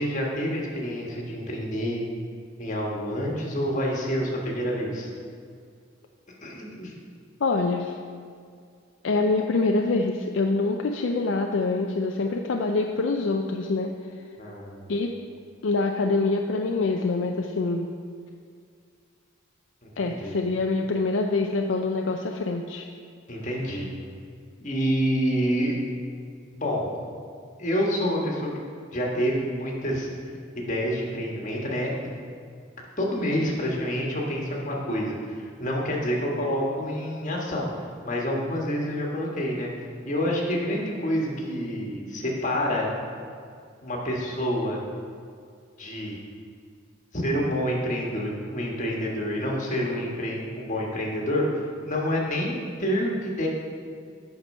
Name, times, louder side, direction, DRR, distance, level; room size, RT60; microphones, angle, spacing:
voice 1, 0.0-2.0 2.6-5.1 6.4-6.9 14.4-14.9 19.8-20.4 23.3-23.9 24.6-25.8 26.5-27.0 27.6-28.5 28.9-30.1 30.5-31.9 33.0-37.7 38.0-39.7 40.0-42.9 43.8-44.8 45.8-46.2 47.1-53.5, equal, 40° left, -2 dB, 1.4 m, -28 dB
voice 2, 7.4-8.0 9.0-13.9 14.9-15.1 15.6-17.9 20.0-22.8, left 3 dB, 65° left, 3 dB, 0.4 m, -25 dB
8.0 x 6.0 x 5.4 m, 2.2 s
head